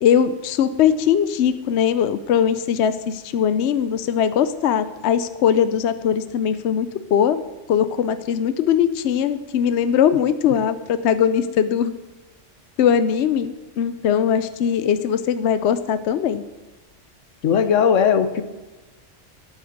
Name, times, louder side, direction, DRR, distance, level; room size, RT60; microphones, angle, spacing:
voice 1, 0.0-11.9 12.8-16.4, left 8 dB, 70° left, 12 dB, 0.9 m, -20 dB
voice 2, 17.4-18.4, left 7 dB, 85° left, 11 dB, 1.2 m, -17 dB
9.4 x 9.1 x 7.8 m, 1.2 s
omnidirectional pair, 1.2 m